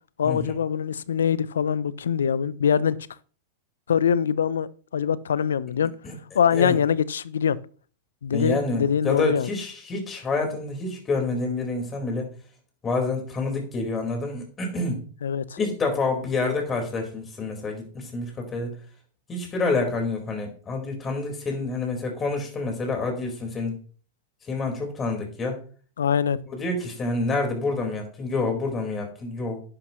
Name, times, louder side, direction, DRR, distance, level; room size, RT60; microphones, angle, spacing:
voice 1, 0.2-3.0 3.9-4.7 4.9-5.9 6.3-7.6 8.2-9.5 15.2-15.4 26.0-26.4, left 7 dB, 80° left, 0.6 m, -23 dB
voice 2, 8.3-12.3 12.8-15.0 15.6-18.8 19.3-23.7 24.5-25.6 26.5-29.6, left 3 dB, 25° left, 4.6 m, -28 dB
11.0 x 11.0 x 3.1 m
hypercardioid pair, 100°, 0 cm